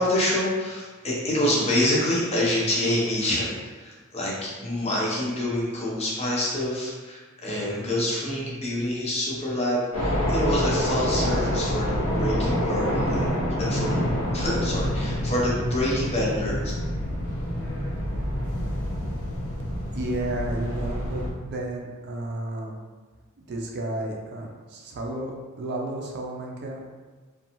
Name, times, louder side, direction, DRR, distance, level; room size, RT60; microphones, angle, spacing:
voice 1, 0.0-14.1 14.3-16.6, left 1 dB, 30° left, -5 dB, 0.6 m, -27 dB
sound 1, 9.9-21.3, equal, 85° left, 0.6 m, -27 dB
voice 2, 19.9-22.7 23.5-26.9, right 1 dB, 50° right, 0 dB, 0.4 m, -32 dB
2.5 x 2.2 x 2.9 m, 1.3 s
head